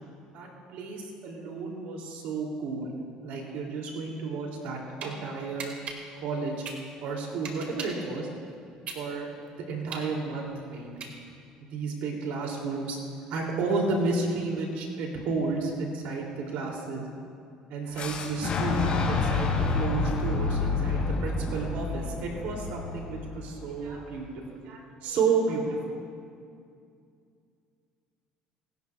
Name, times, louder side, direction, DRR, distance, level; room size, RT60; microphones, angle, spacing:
voice 1, 0.3-2.9 3.2-5.7 6.2-6.7 7.0-8.3 8.9-11.1 11.6-13.0 13.3-17.1 17.7-25.9, right 4 dB, 75° right, 0 dB, 2.8 m, -32 dB
sound 1, 4.7-5.1 5.6-8.1 8.5-11.5, right 5 dB, 55° right, 2.2 m, -40 dB
Fire / Explosion, 18.0-23.8, left 4 dB, 45° left, 2.8 m, -29 dB
25.5 x 12.0 x 2.4 m, 2.4 s
supercardioid pair, 90°, 3 cm